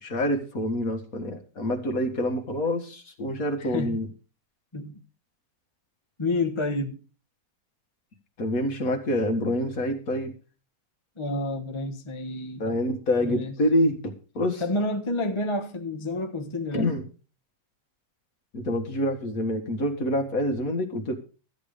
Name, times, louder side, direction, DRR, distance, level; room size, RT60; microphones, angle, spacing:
voice 1, 0.0-4.1 8.4-10.3 12.6-14.6 16.7-17.0 18.5-21.1, left 1 dB, 50° left, 2.0 m, -26 dB
voice 2, 6.2-7.0 11.2-12.8 13.2-13.5 14.6-16.9, left 2 dB, 20° left, 0.9 m, -29 dB
13.5 x 8.9 x 5.1 m
omnidirectional pair, 1.9 m